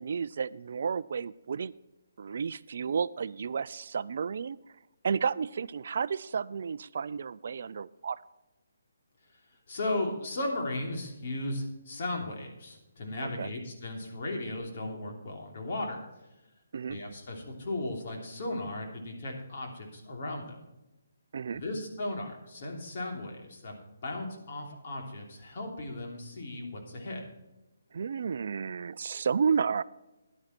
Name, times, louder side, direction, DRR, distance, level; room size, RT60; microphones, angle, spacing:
voice 1, 0.0-1.7 2.2-4.6 5.0-8.2 13.4-13.5 16.7-17.0 21.3-21.6 27.9-29.8, right 6 dB, 60° right, 18 dB, 0.4 m, -32 dB
voice 2, 9.7-16.0 16.9-20.6 21.5-27.2, left 2 dB, 50° left, 1 dB, 3.1 m, -36 dB
11.0 x 10.5 x 4.4 m, 0.99 s
hypercardioid pair, 150°, 0 cm